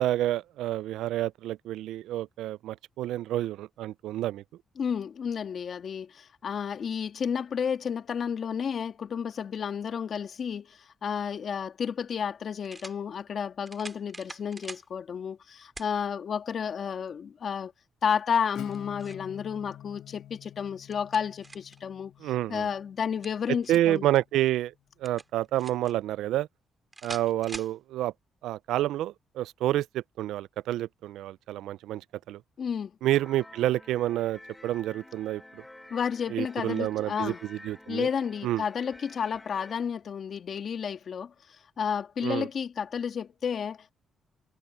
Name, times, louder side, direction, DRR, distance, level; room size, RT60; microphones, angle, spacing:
voice 1, 0.0-4.4 22.2-22.7 23.7-24.7 25.0-26.5 27.0-28.1 28.4-32.0 32.3-32.4 33.0-35.6 36.3-38.1 38.4-38.6 42.2-42.5, right 14 dB, 85° right, 0.3 m, -29 dB
voice 2, 4.8-17.7 18.0-22.1 22.5-24.1 32.6-32.9 35.9-37.4 37.9-43.9, left 7 dB, 55° left, 1.9 m, -31 dB
sound 1, 11.4-11.5 12.6-13.0 13.7-14.9 15.8-15.9 16.5-16.6 18.5-19.3 20.6-21.8 23.0-24.0 25.0-25.9 26.9-27.8, right 2 dB, 20° right, 2.4 m, -44 dB
Acoustic guitar / Strum, 18.5-24.0, left 12 dB, 80° left, 3.3 m, -48 dB
sound 2, 33.1-39.8, left 1 dB, 10° left, 2.5 m, -50 dB
cardioid pair, 90°, 0 cm